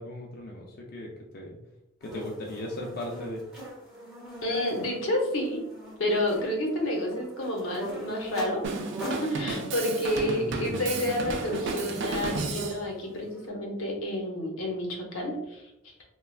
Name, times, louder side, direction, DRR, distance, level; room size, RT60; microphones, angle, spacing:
voice 1, 0.0-1.6 2.0-3.4, left 1 dB, 50° left, -1 dB, 0.4 m, -37 dB
sound 1, 2.0-13.5, equal, 5° right, 0.8 m, -43 dB
voice 2, 4.4-5.6 6.0-8.6 9.0-15.6, left 1 dB, 85° left, 0 dB, 0.7 m, -29 dB
Drum kit, 8.6-12.8, right 3 dB, 65° right, 0.3 m, -32 dB
3.2 x 2.2 x 2.3 m, 0.89 s
head